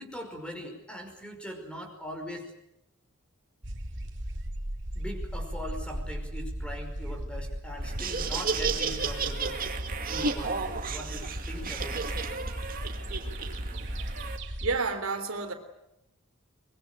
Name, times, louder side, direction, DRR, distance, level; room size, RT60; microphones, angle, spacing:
voice 1, 0.0-2.5 5.0-9.6 10.1-12.1, equal, 5° left, 4 dB, 5.4 m, -41 dB
sound 1, 3.6-14.8, equal, 60° right, 2.9 m, -36 dB
Laughter, 7.8-14.4, right 5 dB, 45° right, 2.4 m, -33 dB
voice 2, 14.6-15.5, right 4 dB, 90° right, 7 dB, 3.6 m, -29 dB
24.0 x 22.5 x 9.2 m, 0.85 s
head